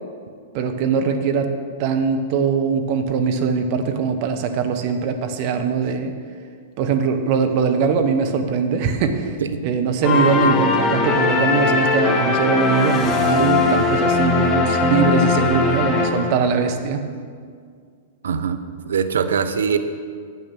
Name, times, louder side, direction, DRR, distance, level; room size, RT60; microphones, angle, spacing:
voice 1, 0.5-1.5 1.8-6.1 6.8-9.4 9.6-17.0, right 5 dB, 50° right, 7 dB, 1.1 m, -21 dB
sound 1, 10.0-16.6, left 4 dB, 25° left, 1.2 m, -20 dB
voice 2, 18.2-18.6 18.9-19.8, right 6 dB, 75° right, 9 dB, 0.7 m, -21 dB
9.3 x 8.4 x 6.0 m, 2.1 s
hypercardioid pair, 110°, 0 cm